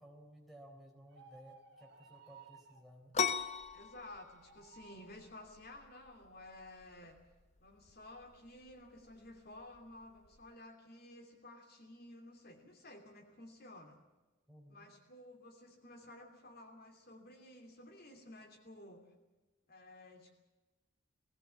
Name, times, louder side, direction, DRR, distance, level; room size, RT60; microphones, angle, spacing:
voice 1, 0.0-3.2 14.5-14.9, equal, ahead, 0 dB, 3.9 m, -57 dB
sound 1, 1.1-2.9 4.2-5.2, right 5 dB, 55° right, 1.7 m, -59 dB
sound 2, 3.1-10.5, left 6 dB, 35° left, 0.7 m, -41 dB
voice 2, 3.7-7.2 7.6-14.0 14.7-19.1 19.7-20.3, left 1 dB, 50° left, 3 dB, 2.9 m, -54 dB
19.5 x 16.5 x 8.4 m, 1.1 s
head